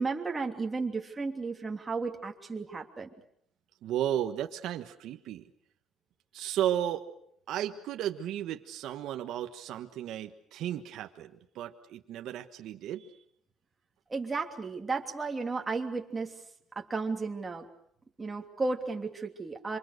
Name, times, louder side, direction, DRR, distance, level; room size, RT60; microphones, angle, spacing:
voice 1, 0.0-3.1 14.1-16.3 16.7-17.7 18.2-19.8, right 4 dB, 20° right, 2 dB, 3.0 m, -33 dB
voice 2, 3.8-5.5 6.3-7.1 7.5-13.2, right 11 dB, 75° right, 6 dB, 1.4 m, -34 dB
27.5 x 25.5 x 6.7 m, 0.71 s
cardioid pair, 125°, 0 cm